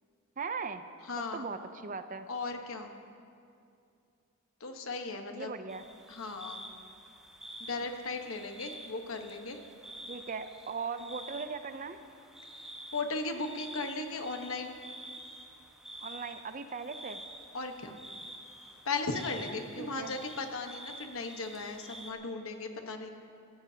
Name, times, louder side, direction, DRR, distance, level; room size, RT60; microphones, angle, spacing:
voice 1, 0.4-0.8 1.3-2.3 5.3-5.9 10.1-12.0 16.0-17.2 19.8-20.2, right 5 dB, 35° right, 10 dB, 0.5 m, -39 dB
voice 2, 1.1-1.5 2.3-2.9 4.6-5.5 6.1-6.6 7.6-9.6 12.9-14.8 17.5-18.0 18.8-23.1, left 3 dB, 65° left, 5 dB, 1.2 m, -37 dB
sound 1, 5.7-22.1, right 1 dB, ahead, 1.2 m, -49 dB
24.5 x 14.0 x 2.8 m, 2.5 s
head